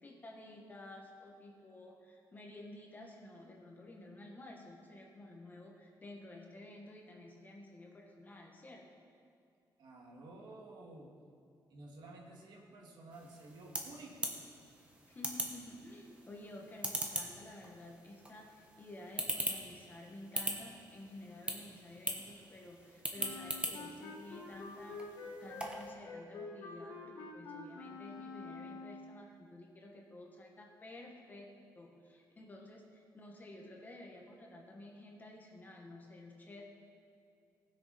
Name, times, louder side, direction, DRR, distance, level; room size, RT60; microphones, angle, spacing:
voice 1, 0.0-8.8 15.1-31.5 31.7-36.6, left 1 dB, 25° left, 0 dB, 1.3 m, -52 dB
voice 2, 9.8-11.1 11.7-14.4, right 2 dB, 70° right, -1 dB, 2.1 m, -52 dB
sound 1, 13.1-25.9, right 1 dB, 15° right, 1.1 m, -42 dB
Wind instrument woodwind instrument, 23.2-29.2, left 3 dB, 80° left, 2.0 m, -47 dB
19.0 x 6.6 x 4.2 m, 2.5 s
wide cardioid pair, 165°, 8 cm